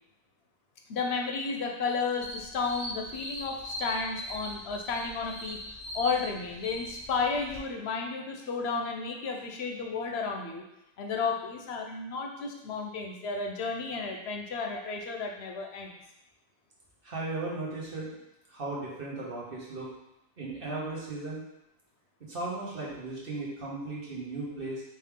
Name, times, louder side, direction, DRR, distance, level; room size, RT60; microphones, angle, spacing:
voice 1, 0.9-5.6 5.9-10.6 11.0-16.0, left 4 dB, 80° left, 2 dB, 1.0 m, -32 dB
sound 1, 2.2-7.6, equal, 55° left, 1.4 m, -40 dB
voice 2, 17.0-18.2 18.5-19.9 20.4-21.4 22.2-24.8, right 2 dB, 60° right, -5 dB, 1.4 m, -36 dB
4.6 x 3.2 x 3.6 m, 0.86 s
omnidirectional pair, 1.1 m